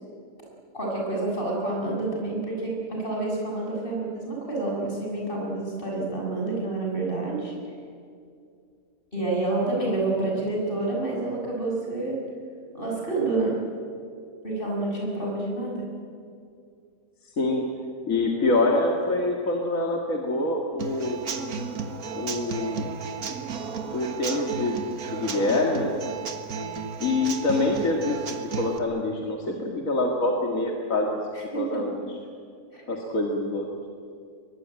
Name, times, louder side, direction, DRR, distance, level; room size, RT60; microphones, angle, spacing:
voice 1, 0.7-7.5 9.1-12.2 12.7-13.6 14.4-15.8 31.3-31.8 32.7-32.8, right 2 dB, 35° left, -2 dB, 7.8 m, -28 dB
voice 2, 18.1-21.2 22.1-22.9 23.9-24.8 25.1-26.0 27.0-32.0 32.9-33.7, left 2 dB, 70° left, 0 dB, 2.5 m, -25 dB
Human voice / Acoustic guitar / Drum, 20.8-28.8, right 5 dB, 90° right, 2.0 m, -33 dB
23.5 x 21.5 x 9.0 m, 2.3 s
omnidirectional pair, 1.5 m